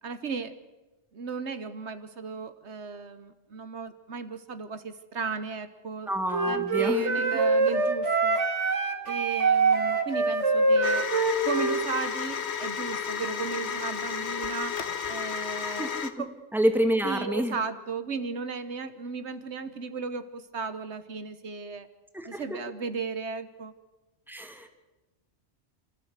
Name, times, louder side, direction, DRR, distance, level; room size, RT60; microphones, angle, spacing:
voice 1, 0.0-0.6 1.1-6.1 6.5-8.4 9.1-11.0 11.4-14.8 15.1-15.9 16.2-16.3 17.0-21.9 22.2-23.7, right 5 dB, 70° right, 11 dB, 1.4 m, -35 dB
voice 2, 6.1-7.0 15.8-16.2 16.5-17.5 22.1-22.4 24.3-24.7, equal, ahead, 5 dB, 2.0 m, -27 dB
Wind instrument woodwind instrument, 6.3-11.8, right 3 dB, 90° right, 2.1 m, -24 dB
sound 1, 10.8-16.1, left 7 dB, 70° left, 1.5 m, -32 dB
28.0 x 14.0 x 8.1 m, 1.1 s
omnidirectional pair, 1.2 m